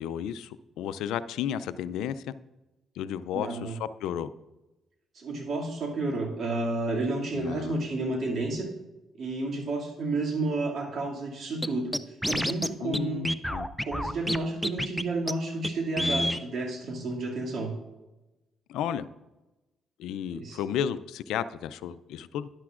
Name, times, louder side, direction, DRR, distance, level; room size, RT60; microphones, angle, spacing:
voice 1, 0.0-2.2 3.0-4.3 7.3-7.8 12.8-13.7 18.7-19.1 20.0-22.5, left 9 dB, 90° left, 15 dB, 0.3 m, -33 dB
voice 2, 3.3-3.7 5.1-8.7 9.2-11.9 12.3-13.3 13.8-17.7 20.3-20.6, right 2 dB, 55° right, -1 dB, 2.3 m, -31 dB
Scratching (performance technique), 11.6-11.7 11.9-12.7 12.9-13.0 13.3-14.4 14.6-15.0 15.3-15.4 15.6-15.7 16.0-16.4, equal, ahead, 0.4 m, -28 dB
12.0 x 10.5 x 2.5 m, 1.1 s
cardioid pair, 90°, 0 cm